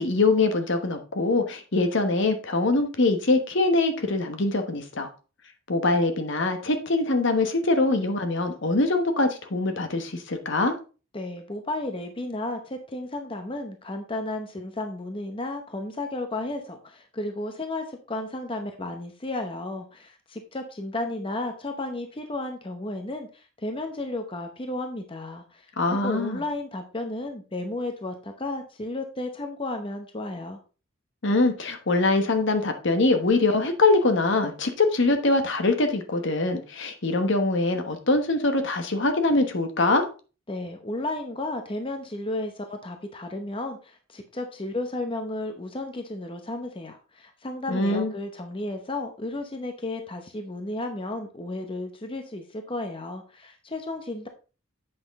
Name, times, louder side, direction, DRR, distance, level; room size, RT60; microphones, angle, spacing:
voice 1, 0.0-5.1 5.7-10.7 25.8-26.4 31.2-40.0 47.7-48.1, left 2 dB, 60° left, 1.1 m, -23 dB
voice 2, 11.1-30.6 40.5-54.3, left 2 dB, 25° left, 0.8 m, -33 dB
7.9 x 5.9 x 3.6 m
head